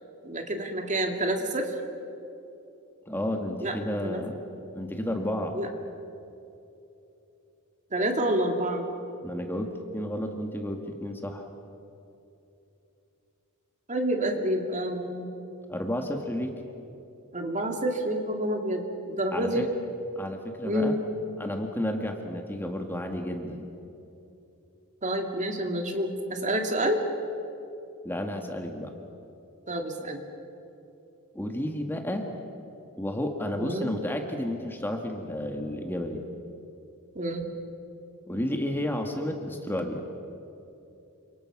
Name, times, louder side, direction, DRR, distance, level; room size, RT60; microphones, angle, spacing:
voice 1, 0.2-1.7 3.6-4.2 5.5-5.7 7.9-8.8 13.9-15.3 17.3-19.7 20.6-21.0 25.0-27.0 29.7-30.2 33.6-33.9 37.1-37.5, right 1 dB, 35° right, 3 dB, 2.5 m, -28 dB
voice 2, 3.1-4.4 4.7-5.5 9.2-11.5 15.7-16.5 19.3-19.7 20.2-21.0 21.4-23.7 28.0-28.9 31.4-32.3 33.0-36.2 38.3-40.1, left 1 dB, 10° left, 3 dB, 1.7 m, -31 dB
29.5 x 26.5 x 6.0 m, 2.8 s
head